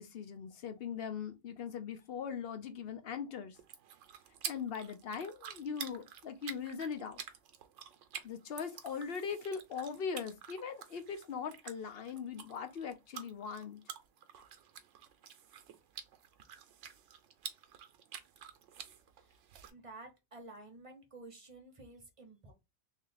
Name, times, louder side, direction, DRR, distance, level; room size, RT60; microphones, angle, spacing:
voice 1, 0.0-3.6 4.5-7.2 8.2-13.8, left 6 dB, 60° left, 0.8 m, -40 dB
sound 1, 3.5-19.7, right 8 dB, 85° right, 1.0 m, -49 dB
voice 2, 19.7-22.5, right 2 dB, 30° right, 1.0 m, -52 dB
3.2 x 2.8 x 3.8 m
omnidirectional pair, 1.2 m